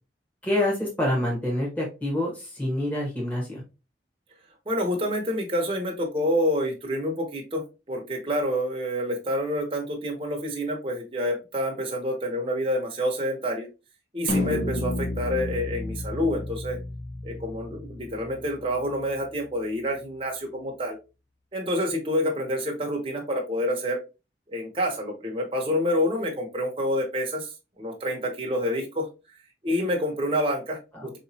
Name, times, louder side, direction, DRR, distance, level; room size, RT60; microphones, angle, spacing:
voice 1, 0.4-3.6 30.9-31.1, left 1 dB, 10° left, -4 dB, 1.3 m, -27 dB
voice 2, 4.7-7.6 7.9-13.7 14.1-16.8 17.2-21.0 21.5-24.0 24.5-27.5 27.8-29.1 29.6-31.1, equal, 30° right, 1 dB, 0.9 m, -28 dB
sound 1, 14.3-18.8, left 1 dB, 60° left, 0.7 m, -31 dB
4.7 x 3.0 x 2.7 m, 0.29 s
head